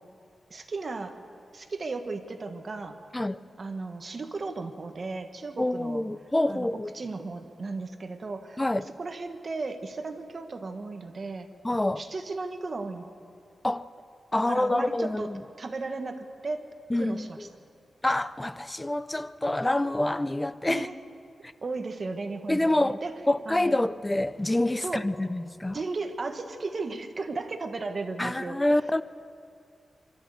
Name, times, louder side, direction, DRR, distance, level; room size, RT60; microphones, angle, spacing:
voice 1, 0.5-1.2 1.5-3.0 3.6-6.0 6.5-6.7 6.9-8.6 9.0-11.5 12.0-13.1 14.5-15.3 15.6-16.7 16.9-17.5 20.7-21.0 21.6-23.1 23.4-23.8 24.8-25.1 25.7-28.8, right 3 dB, 40° right, 1.3 m, -35 dB
voice 2, 5.6-6.9 8.6-8.9 11.6-12.0 13.6-13.9 14.3-15.4 16.9-17.5 18.0-20.9 22.5-25.8 28.2-29.0, left 1 dB, 15° left, 0.4 m, -27 dB
25.0 x 13.0 x 8.0 m
wide cardioid pair, 130°, 0 cm